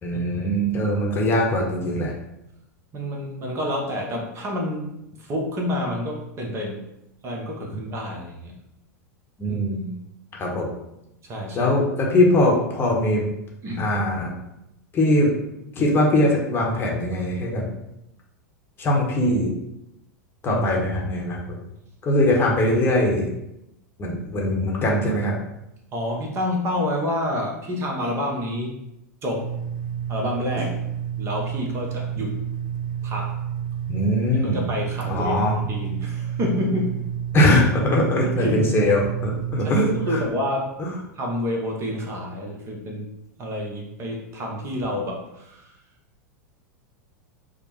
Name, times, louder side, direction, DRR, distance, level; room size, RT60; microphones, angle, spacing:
voice 1, 0.0-2.1 9.4-9.9 10.3-10.8 11.5-13.2 13.8-14.3 14.9-15.3 15.8-17.6 18.8-19.5 20.4-21.6 22.0-23.3 24.0-25.3 33.9-34.6 35.1-35.6 37.3-40.2 40.8-40.9, left 1 dB, 25° left, -1 dB, 0.9 m, -21 dB
voice 2, 2.9-4.9 5.2-6.8 7.2-8.5 9.5-9.6 11.2-11.8 13.6-13.9 20.5-20.6 25.9-28.7 29.2-29.5 30.1-30.8 31.2-32.3 33.0-33.3 34.4-37.1 38.4-38.7 39.6-40.7 41.2-43.1 43.4-45.7, left 1 dB, 30° right, 0 dB, 0.8 m, -28 dB
sound 1, 29.4-40.3, right 9 dB, 80° right, 0.5 m, -30 dB
5.1 x 2.1 x 3.0 m, 0.84 s
figure-of-eight pair, 90°, 9 cm